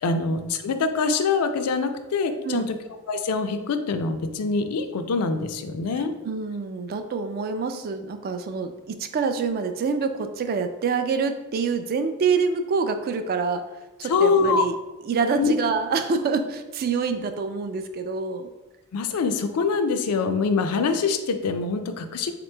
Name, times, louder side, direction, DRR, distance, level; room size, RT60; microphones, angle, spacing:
voice 1, 0.0-2.6 3.1-6.1 14.1-14.6 15.4-15.5 18.9-22.3, left 4 dB, 80° left, 7 dB, 0.4 m, -24 dB
voice 2, 6.2-13.6 14.0-14.7 15.0-18.5, right 5 dB, 45° right, 8 dB, 0.3 m, -26 dB
3.8 x 2.9 x 3.3 m, 1.1 s
head